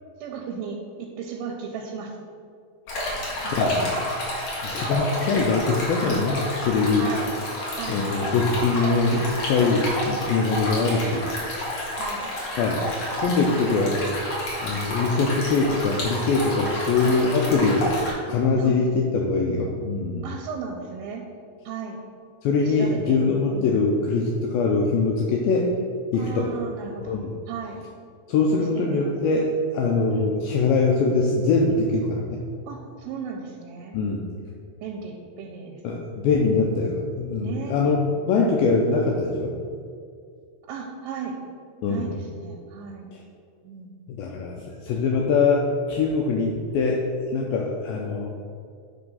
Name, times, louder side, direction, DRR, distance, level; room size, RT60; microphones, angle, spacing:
voice 1, 0.2-2.2 3.4-3.8 7.0-7.5 7.7-8.1 11.9-12.3 17.0-17.1 18.6-19.1 20.2-21.2 21.6-22.0 22.6-23.2 23.5-23.7 26.1-27.8 28.5-29.1 30.1-30.4 32.6-34.0 34.8-35.8 37.4-37.7 38.4-38.5 40.6-41.4 41.9-43.2 43.6-44.0, right 6 dB, 80° right, 1 dB, 2.4 m, -36 dB
Stream, 2.9-18.1, left 1 dB, 55° left, 2.3 m, -30 dB
voice 2, 3.5-3.9 4.6-7.1 7.9-11.2 12.6-12.8 13.2-14.1 14.6-17.9 18.3-20.3 22.4-25.7 26.1-26.5 27.0-27.3 28.3-32.4 33.9-34.3 35.8-38.0 38.3-39.5 41.8-42.1 43.1-43.2 44.1-45.6 45.9-48.3, left 4 dB, 90° left, 0 dB, 2.1 m, -23 dB
9.9 x 3.4 x 5.5 m, 2.2 s
omnidirectional pair, 4.8 m